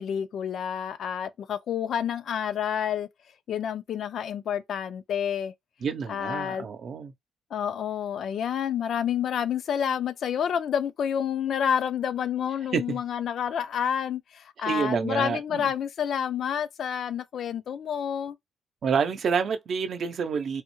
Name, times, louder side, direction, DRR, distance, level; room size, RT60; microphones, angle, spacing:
voice 1, 0.0-3.1 3.5-5.5 6.1-6.7 7.5-18.4, left 8 dB, 65° left, 0.4 m, -29 dB
voice 2, 5.8-7.1 12.7-13.0 14.6-15.7 18.8-20.6, right 6 dB, 60° right, 0.6 m, -28 dB
3.4 x 2.1 x 3.0 m
cardioid pair, 90°, 0 cm